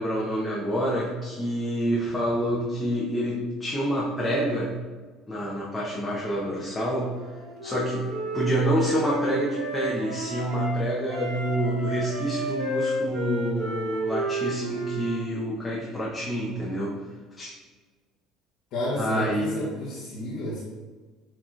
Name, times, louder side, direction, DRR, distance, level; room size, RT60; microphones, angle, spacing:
voice 1, 0.0-4.8 5.3-7.2 7.6-17.0 17.4-17.5 19.0-19.6, right 1 dB, 20° left, -6 dB, 0.9 m, -27 dB
Wind instrument woodwind instrument, 7.1-10.7 11.1-15.2, equal, 70° right, 0.9 m, -32 dB
voice 2, 18.7-20.6, left 1 dB, 65° left, -8 dB, 1.2 m, -31 dB
6.1 x 3.0 x 2.5 m, 1.4 s
hypercardioid pair, 75°, 0 cm